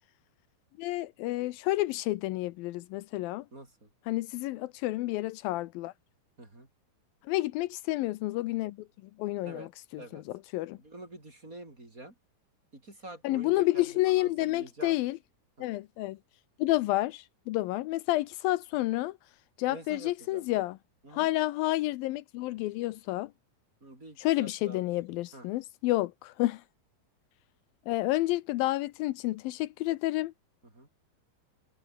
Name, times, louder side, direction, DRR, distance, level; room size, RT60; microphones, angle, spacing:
voice 1, 0.8-3.5 4.1-5.9 7.3-8.8 9.2-10.2 10.5-10.8 13.2-15.2 15.6-16.2 16.6-19.2 19.6-20.8 21.1-23.3 24.2-26.6 27.9-30.3, left 17 dB, 80° left, 2.5 m, -30 dB
voice 2, 3.5-3.9 6.4-6.7 9.4-9.7 10.0-10.2 10.8-12.1 12.7-15.0 15.6-15.7 19.7-20.5 21.0-21.3 23.8-24.8 25.3-25.5 30.7-30.9, right 2 dB, 20° right, 5.6 m, -47 dB
omnidirectional pair, 4.2 m